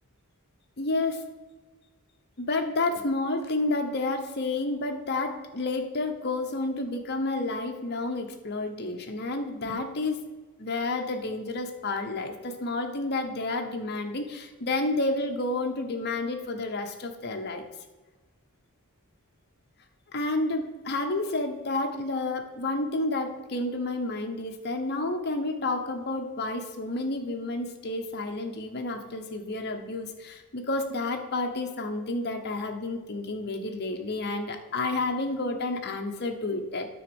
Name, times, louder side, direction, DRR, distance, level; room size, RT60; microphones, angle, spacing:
voice 1, 0.8-1.2 2.4-10.2 10.6-17.6 20.1-36.9, left 2 dB, 45° left, 4 dB, 1.0 m, -30 dB
9.5 x 3.9 x 7.0 m, 1.3 s
head